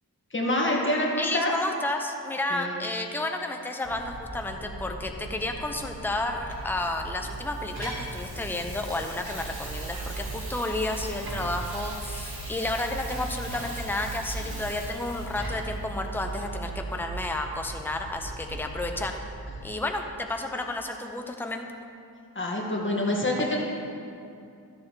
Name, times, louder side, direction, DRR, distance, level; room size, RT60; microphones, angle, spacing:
voice 1, 0.3-1.5 2.5-2.8 22.4-23.6, left 1 dB, 30° left, -2 dB, 1.9 m, -26 dB
voice 2, 1.2-19.2 19.6-21.7, left 2 dB, 5° left, 4 dB, 0.8 m, -31 dB
sound 1, 3.8-19.7, right 2 dB, 45° right, 2.1 m, -38 dB
Water tap faucet / Sink (filling or washing), 6.5-15.8 16.3-16.4, right 1 dB, 65° right, 2.3 m, -41 dB
13.0 x 7.3 x 3.3 m, 2.5 s
cardioid pair, 60°, 39 cm